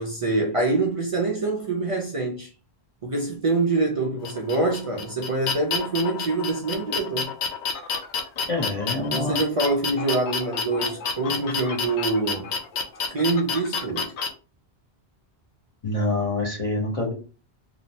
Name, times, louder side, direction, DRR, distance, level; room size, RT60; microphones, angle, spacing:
voice 1, 0.0-2.5 3.0-7.3 8.9-12.5 13.1-14.2, right 3 dB, 50° right, 0.4 m, -25 dB
sound 1, 4.2-14.3, left 5 dB, 85° left, 0.9 m, -29 dB
voice 2, 8.5-9.4 15.8-17.1, left 2 dB, 35° left, 0.8 m, -26 dB
2.9 x 2.0 x 2.7 m
omnidirectional pair, 1.1 m